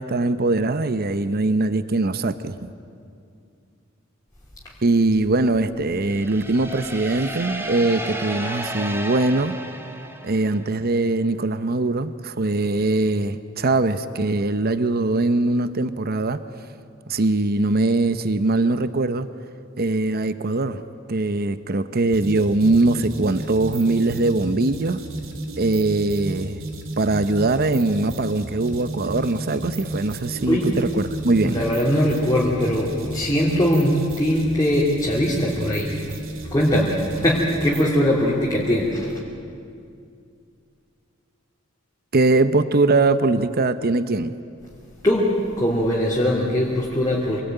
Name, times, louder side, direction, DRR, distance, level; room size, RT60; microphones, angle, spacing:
voice 1, 0.0-2.7 4.8-9.6 10.2-16.4 17.1-19.3 19.8-20.8 21.1-25.0 25.6-26.6 27.0-31.6 42.1-44.3, right 2 dB, 50° right, 12 dB, 0.8 m, -21 dB
sound 1, 6.1-10.8, right 1 dB, 10° right, 1.8 m, -33 dB
sound 2, 22.1-38.0, right 1 dB, 75° right, 2.9 m, -33 dB
voice 2, 31.4-36.0 36.5-39.2 45.0-47.4, equal, 20° left, -5 dB, 2.9 m, -21 dB
26.0 x 19.5 x 9.1 m, 2.4 s
head